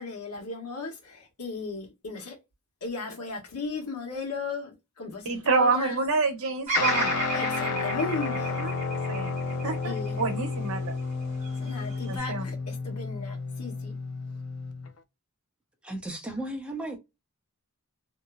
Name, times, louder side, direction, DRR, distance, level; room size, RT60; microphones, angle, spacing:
voice 1, 0.0-2.4 2.8-6.0 7.3-8.6 9.8-10.2 11.6-13.9, left 4 dB, 90° left, 1.2 m, -36 dB
voice 2, 5.2-7.2 8.6-8.7 9.1-9.3 9.6-10.9 12.1-12.5, right 4 dB, 65° right, 0.9 m, -27 dB
Bird vocalization bird call bird song, 6.7-10.9 11.4-12.2, right 2 dB, 35° right, 1.1 m, -32 dB
Guitar, 6.8-14.9, left 4 dB, 70° left, 0.5 m, -31 dB
voice 3, 15.8-17.0, right 1 dB, 5° right, 0.7 m, -34 dB
2.9 x 2.1 x 2.3 m
head